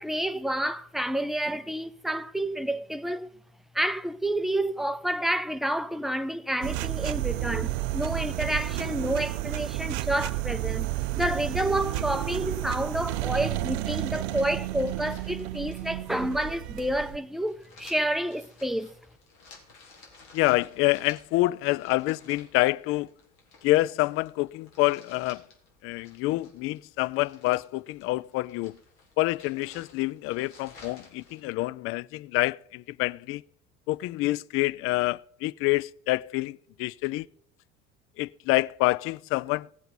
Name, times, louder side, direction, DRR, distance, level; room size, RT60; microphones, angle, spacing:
voice 1, 0.0-3.3 3.7-10.9 11.1-18.9, right 1 dB, ahead, 0.6 m, -29 dB
sound 1, 6.6-17.2, right 16 dB, 65° right, 0.6 m, -31 dB
sound 2, 13.7-31.4, left 3 dB, 60° left, 4.1 m, -55 dB
voice 2, 20.3-23.1 23.6-25.4 25.8-28.8 29.2-33.4 33.9-37.3 38.2-39.7, left 20 dB, 40° left, 0.4 m, -27 dB
18.0 x 7.9 x 5.3 m
figure-of-eight pair, 65°, 36 cm